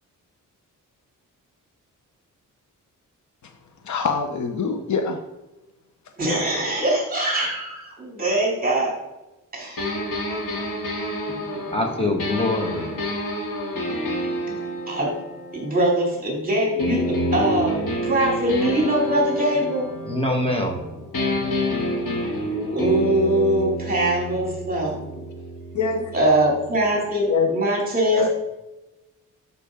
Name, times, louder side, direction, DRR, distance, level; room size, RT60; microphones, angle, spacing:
voice 1, 3.8-5.2 25.7-26.1 27.3-27.5 28.1-28.3, left 5 dB, 60° left, 5 dB, 0.9 m, -24 dB
voice 2, 6.2-9.0 9.5-10.0 14.5-14.6 14.9-15.1 15.5-19.9 22.7-24.9 26.1-28.3, right 1 dB, 25° right, -2 dB, 2.9 m, -22 dB
sound 1, 9.8-16.3 16.8-20.8 21.1-26.9, left 1 dB, 75° left, 2.6 m, -28 dB
voice 3, 11.3-13.1 20.0-22.5, left 1 dB, 15° left, 1 dB, 1.6 m, -27 dB
12.5 x 5.9 x 3.8 m, 1.0 s
wide cardioid pair, 155°, 33 cm